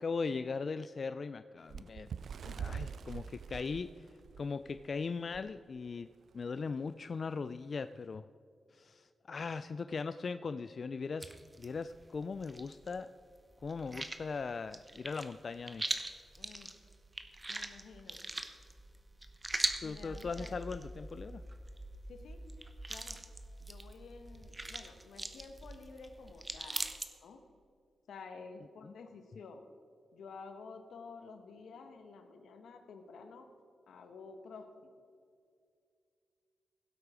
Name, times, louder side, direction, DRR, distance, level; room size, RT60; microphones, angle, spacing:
voice 1, 0.0-2.1 2.6-3.9 4.4-8.2 8.7-11.3 11.6-13.1 13.6-15.9 19.8-21.4 28.8-28.9, left 4 dB, 55° left, 12 dB, 0.3 m, -39 dB
Bird, 1.7-4.9 5.3-5.5 5.8-6.0 6.8-6.9, right 7 dB, 70° right, 0.3 m, -43 dB
voice 2, 2.4-2.9 3.5-3.7 16.4-16.7 17.5-18.2 19.8-20.6 22.1-22.4 22.9-23.2 23.6-26.9 27.2-27.4 28.1-29.6 30.1-33.5 33.9-34.7, left 4 dB, 85° left, 7 dB, 1.2 m, -51 dB
sound 1, 11.2-13.0 13.3-27.1, right 2 dB, 25° right, 1.0 m, -42 dB
16.5 x 8.0 x 4.9 m, 2.3 s
cardioid pair, 65°, 0 cm